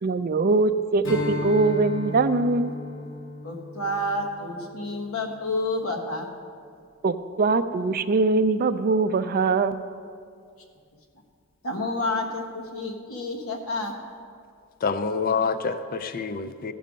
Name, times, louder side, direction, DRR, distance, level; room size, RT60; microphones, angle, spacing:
voice 1, 0.0-2.7 7.0-9.8, right 3 dB, 45° right, 11 dB, 0.4 m, -22 dB
Strum, 1.0-5.7, left 1 dB, 65° left, 1.3 m, -35 dB
voice 2, 3.4-6.3 11.6-13.9, left 2 dB, 85° left, 1 dB, 1.3 m, -29 dB
voice 3, 14.8-16.7, left 5 dB, 45° left, 11 dB, 0.4 m, -27 dB
15.5 x 5.5 x 5.2 m, 2.2 s
head